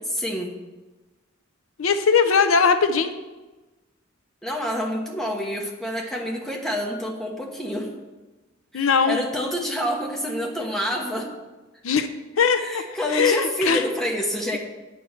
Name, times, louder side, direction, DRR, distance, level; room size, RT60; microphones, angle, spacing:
voice 1, 0.1-0.5 4.4-7.9 8.7-11.3 12.6-14.6, equal, ahead, -1 dB, 1.2 m, -28 dB
voice 2, 1.8-3.1 8.7-9.2 11.8-12.1 12.4-12.8 13.1-13.8, left 6 dB, 75° left, 8 dB, 0.6 m, -20 dB
9.2 x 4.7 x 6.9 m, 1.2 s
head